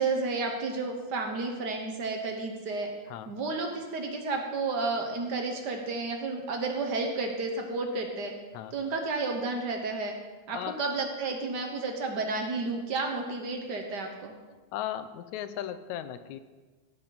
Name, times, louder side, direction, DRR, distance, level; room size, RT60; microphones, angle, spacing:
voice 1, 0.0-2.9 3.3-8.3 8.7-10.2 10.5-14.4, right 3 dB, 55° right, 3 dB, 1.2 m, -31 dB
voice 2, 14.7-16.4, left 11 dB, 85° left, 11 dB, 2.0 m, -36 dB
16.5 x 7.1 x 4.1 m, 1.3 s
omnidirectional pair, 3.3 m